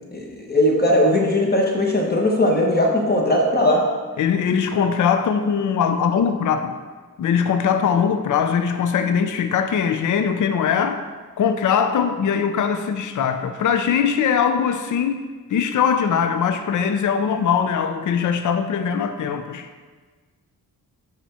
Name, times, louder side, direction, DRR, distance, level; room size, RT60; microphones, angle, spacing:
voice 1, 0.1-3.8, left 1 dB, 25° left, -1 dB, 1.1 m, -19 dB
voice 2, 4.2-6.7 7.2-11.0 11.4-15.2 15.5-19.7, left 7 dB, 60° left, 8 dB, 0.5 m, -21 dB
5.9 x 5.6 x 4.2 m, 1.4 s
wide cardioid pair, 155°, 35 cm